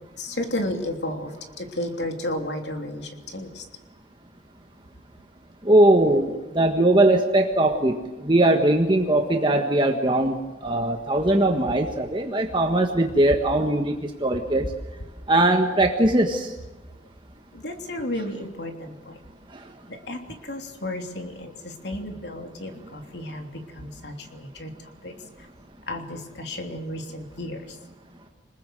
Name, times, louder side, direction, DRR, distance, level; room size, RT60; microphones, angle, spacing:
voice 1, 0.2-3.6 17.5-19.2 19.9-24.7 25.0-25.1 25.9-27.8, left 1 dB, 70° left, 3 dB, 3.2 m, -33 dB
voice 2, 5.6-14.7 15.3-16.5, right 1 dB, 25° right, 3 dB, 1.6 m, -20 dB
28.5 x 20.5 x 7.8 m, 1.1 s
head